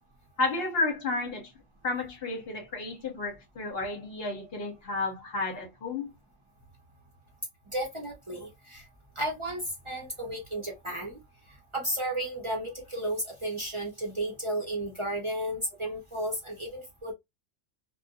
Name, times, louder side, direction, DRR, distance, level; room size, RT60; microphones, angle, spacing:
voice 1, 0.4-1.5 1.8-6.1, left 3 dB, 55° left, 0.9 m, -32 dB
voice 2, 7.7-8.8 9.2-11.2 11.7-17.1, right 1 dB, 25° right, 0.9 m, -33 dB
2.5 x 2.4 x 2.5 m
omnidirectional pair, 1.3 m